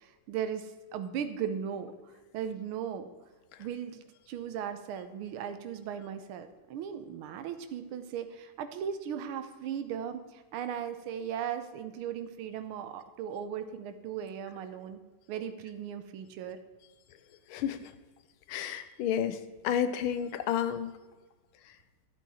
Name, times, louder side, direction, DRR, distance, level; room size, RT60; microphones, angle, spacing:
voice 1, 0.0-3.1 3.6-4.0 4.3-15.0 15.3-16.6, right 8 dB, 90° right, 9 dB, 1.6 m, -37 dB
voice 2, 17.5-17.9 18.5-19.4 19.6-20.9, left 9 dB, 85° left, 12 dB, 1.6 m, -30 dB
12.0 x 8.2 x 4.2 m, 1.3 s
omnidirectional pair, 2.3 m